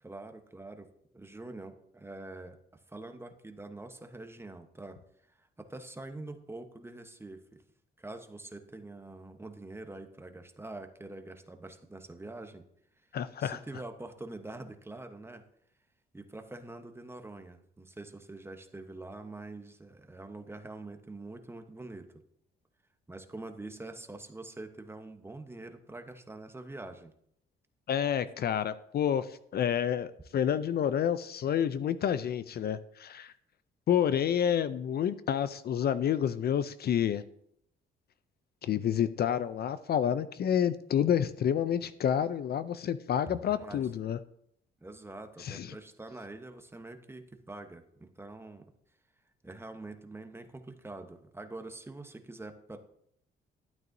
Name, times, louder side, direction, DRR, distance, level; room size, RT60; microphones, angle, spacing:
voice 1, 0.0-0.9 1.1-2.6 2.9-5.0 5.3-7.6 8.0-12.6 13.4-15.4 16.1-22.1 23.1-27.1 43.3-43.9 44.8-48.7 49.4-52.8, right 2 dB, 10° right, 6 dB, 1.0 m, -45 dB
voice 2, 13.1-13.6 27.9-33.3 33.9-37.2 38.6-44.2 45.4-45.7, left 9 dB, 55° left, 14 dB, 0.5 m, -29 dB
12.0 x 9.2 x 2.7 m, 0.72 s
cardioid pair, 90°, 20 cm